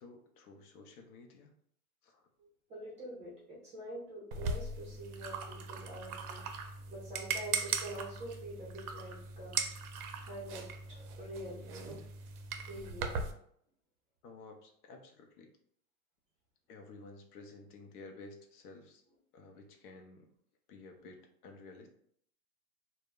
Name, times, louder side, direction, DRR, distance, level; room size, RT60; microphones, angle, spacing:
voice 1, 0.0-1.5 2.0-2.3 14.2-15.5 16.7-19.0 19.3-20.3 20.7-21.9, left 3 dB, 70° left, 4 dB, 0.7 m, -53 dB
voice 2, 2.4-9.6 10.2-12.0 12.7-13.2, right 1 dB, 15° right, -5 dB, 0.5 m, -46 dB
sound 1, 4.3-13.3, right 5 dB, 70° right, 0.6 m, -39 dB
2.1 x 2.1 x 3.5 m, 0.65 s
hypercardioid pair, 135°, 47 cm